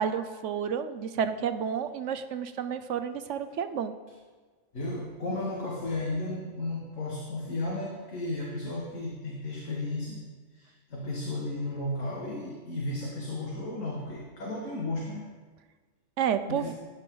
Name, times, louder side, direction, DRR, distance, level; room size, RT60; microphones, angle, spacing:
voice 1, 0.0-3.9 16.2-16.7, right 8 dB, 70° right, 10 dB, 1.0 m, -30 dB
voice 2, 4.7-10.2 10.5-15.3 16.5-16.7, left 2 dB, 75° left, -3 dB, 2.2 m, -34 dB
17.0 x 10.5 x 3.9 m, 1.4 s
omnidirectional pair, 1.4 m